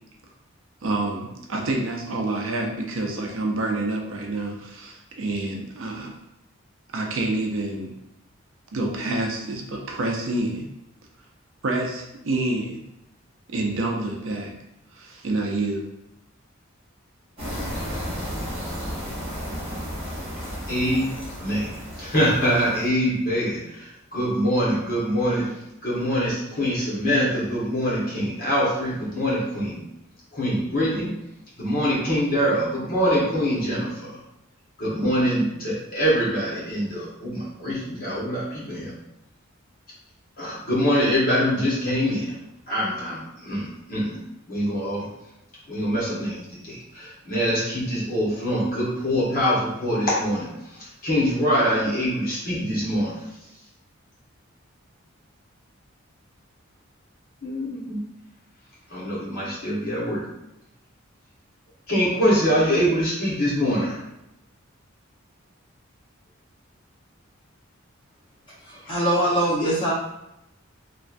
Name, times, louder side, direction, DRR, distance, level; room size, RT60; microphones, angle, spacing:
voice 1, 0.8-6.1 6.9-7.9 8.7-10.7 11.6-12.8 13.5-14.5 14.9-15.8, right 2 dB, 75° right, 1 dB, 0.5 m, -27 dB
sound 1, 17.4-22.9, equal, 30° right, 0.9 m, -33 dB
voice 2, 20.7-21.1 21.4-21.7 22.0-25.5 25.8-29.8 30.3-31.1 31.6-34.2 34.8-38.9 40.4-42.3 42.7-44.2 44.5-45.1 45.7-53.2 57.4-58.0 58.9-60.2 61.9-64.0, equal, 45° left, -7 dB, 1.1 m, -24 dB
voice 3, 68.5-69.9, right 1 dB, 25° left, -8 dB, 0.9 m, -23 dB
3.1 x 2.3 x 2.5 m, 0.87 s
head